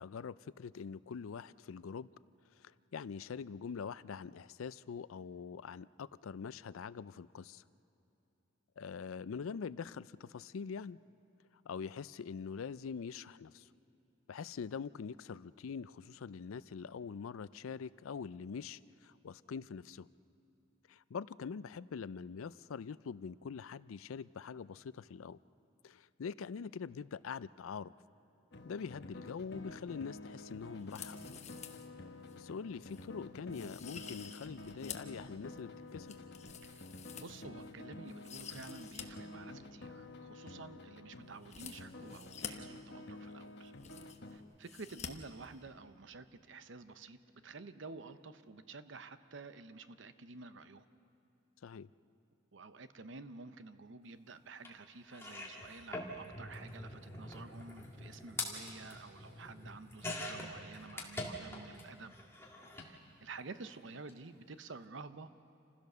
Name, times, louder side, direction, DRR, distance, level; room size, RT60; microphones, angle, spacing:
voice 1, 0.0-2.1 2.5-7.6 8.8-11.0 11.6-13.7 14.3-20.1 20.9-25.4 25.8-27.9 28.6-31.4 32.4-36.2 51.6-51.9, left 6 dB, 85° left, 18 dB, 0.4 m, -44 dB
sound 1, 28.5-44.4, left 2 dB, 55° left, 1.2 m, -50 dB
sound 2, 30.8-31.9 32.3-32.4 32.9-33.1 33.5-35.2 35.6-37.7 38.1-39.0 39.3-39.4 41.4-42.5 43.3-43.4 43.6-44.3 44.6-45.1 45.4-45.5, left 8 dB, 35° left, 1.0 m, -49 dB
voice 2, 37.1-43.7 44.3-50.8 52.5-62.1 62.8-65.4, right 3 dB, 65° right, 12 dB, 0.8 m, -50 dB
sound 3, 54.6-54.7 55.1-61.8 62.1-62.9 63.9-64.1 64.4-64.5, left 2 dB, 10° left, 2.0 m, -44 dB
28.0 x 15.5 x 6.7 m, 2.9 s
head